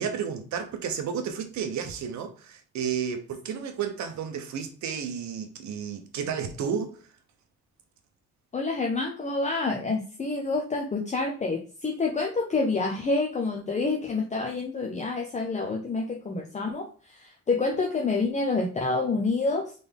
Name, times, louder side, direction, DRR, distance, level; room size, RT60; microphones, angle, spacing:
voice 1, 0.0-7.0, right 7 dB, 70° right, 0.9 m, -32 dB
voice 2, 8.5-19.7, left 3 dB, 25° left, 0.7 m, -28 dB
4.0 x 3.4 x 3.5 m
cardioid pair, 115°, 29 cm